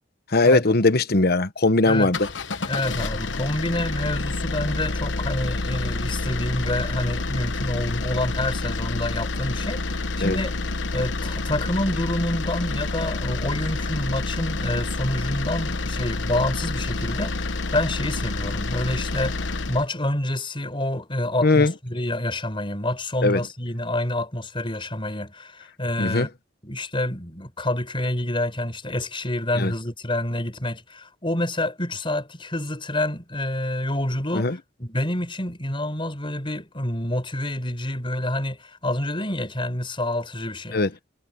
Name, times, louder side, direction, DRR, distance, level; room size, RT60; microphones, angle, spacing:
voice 1, 0.3-2.3 7.9-8.0 10.2-10.4 21.4-21.7 23.2-23.4 26.0-26.3 29.5-29.7 34.3-34.6 40.7-40.9, left 2 dB, 60° left, 1.1 m, -19 dB
voice 2, 1.8-2.2 2.6-10.5 10.9-26.3 26.6-40.8, left 1 dB, 30° left, 4.8 m, -27 dB
sound 1, 2.0-19.9, left 3 dB, 85° left, 1.1 m, -28 dB
head